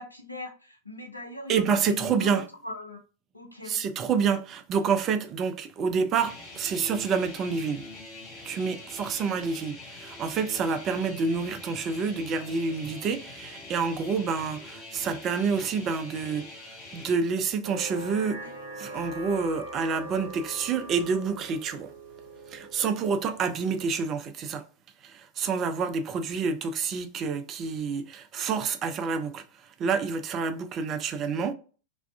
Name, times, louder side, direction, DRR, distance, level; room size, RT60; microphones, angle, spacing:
voice 1, 0.0-3.0 3.3-3.9 9.1-9.6, left 2 dB, 85° left, 0.5 m, -41 dB
voice 2, 1.5-2.4 3.7-7.8 8.4-16.4 16.9-18.4 18.8-21.9 22.5-24.6 25.0-29.4 29.8-31.5, right 5 dB, 30° right, 0.4 m, -28 dB
sound 1, 6.1-17.1, left 2 dB, 30° left, 1.0 m, -44 dB
sound 2, 17.6-24.0, right 2 dB, 80° right, 0.6 m, -42 dB
2.5 x 2.3 x 2.2 m
figure-of-eight pair, 90°, 0 cm